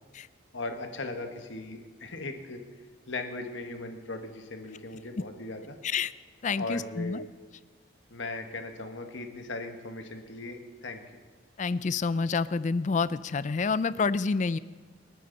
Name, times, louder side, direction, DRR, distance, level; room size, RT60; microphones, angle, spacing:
voice 1, 0.5-2.6 3.1-5.8 6.6-7.2 8.1-11.0, left 2 dB, 70° left, 5 dB, 1.5 m, -38 dB
voice 2, 6.4-7.3 11.6-14.6, left 4 dB, 40° left, 17 dB, 0.4 m, -28 dB
28.0 x 9.7 x 4.1 m, 1.4 s
head